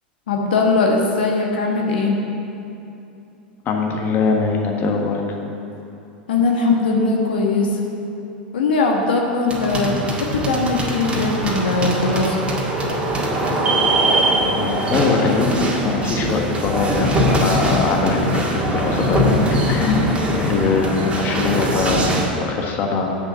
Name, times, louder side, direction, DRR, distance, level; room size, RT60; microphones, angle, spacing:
voice 1, 0.3-2.2 6.3-7.8 8.5-12.5, left 3 dB, 75° left, 0 dB, 1.3 m, -20 dB
voice 2, 3.6-5.2 14.4-23.1, left 4 dB, 40° left, 1 dB, 1.4 m, -22 dB
sound 1, 9.5-22.3, right 1 dB, 20° right, 1.9 m, -21 dB
7.7 x 6.7 x 8.1 m, 2.8 s
hypercardioid pair, 95°, 5 cm